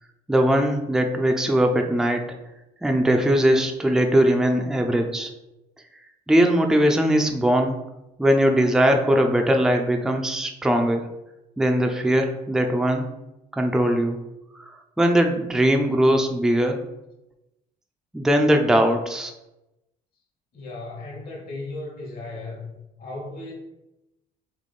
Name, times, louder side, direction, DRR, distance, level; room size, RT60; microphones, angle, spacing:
voice 1, 0.3-2.2 2.8-5.3 6.3-7.8 8.2-11.1 11.6-13.1 13.6-14.2 15.0-16.8 18.1-19.3, equal, 5° right, 3 dB, 0.4 m, -20 dB
voice 2, 20.5-22.7 23.0-23.5, left 2 dB, 60° left, -1 dB, 1.3 m, -35 dB
3.2 x 3.0 x 4.1 m, 0.93 s
cardioid pair, 110°, 17 cm